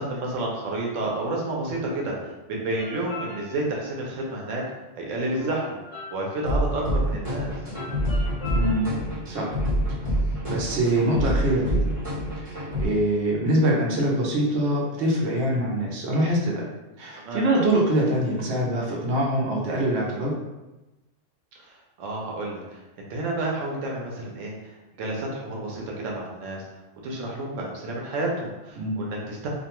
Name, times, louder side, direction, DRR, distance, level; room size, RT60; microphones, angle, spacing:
voice 1, 0.0-4.6 4.9-5.8 6.1-7.5 17.2-17.5 21.6-24.7 25.0-26.6 27.0-29.5, right 2 dB, 90° right, -2 dB, 1.0 m, -30 dB
sound 1, 2.8-3.9 5.2-6.7 7.7-9.2, left 2 dB, 45° left, 0.6 m, -39 dB
sound 2, 6.5-12.9, equal, 30° right, 1.1 m, -26 dB
voice 2, 8.5-8.9 9.3-9.5 10.5-11.9 12.4-16.6 17.0-20.3 28.8-29.0, right 1 dB, 65° right, -3 dB, 0.9 m, -24 dB
2.5 x 2.2 x 2.9 m, 1.0 s
omnidirectional pair, 1.3 m